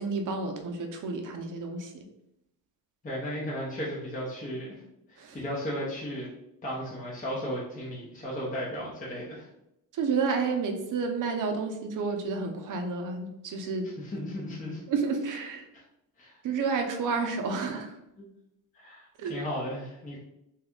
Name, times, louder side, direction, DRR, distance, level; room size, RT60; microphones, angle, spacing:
voice 1, 0.0-2.1 5.2-5.4 9.9-13.9 14.9-15.7 16.4-18.0 19.2-19.5, right 4 dB, 50° right, 4 dB, 0.6 m, -30 dB
voice 2, 3.0-4.8 5.1-6.3 6.6-9.5 14.0-14.8 15.7-15.8 16.2-16.4 18.2-18.3 18.7-20.2, equal, 20° left, -5 dB, 0.8 m, -35 dB
2.8 x 2.4 x 3.5 m, 0.83 s
cardioid pair, 110°, 40 cm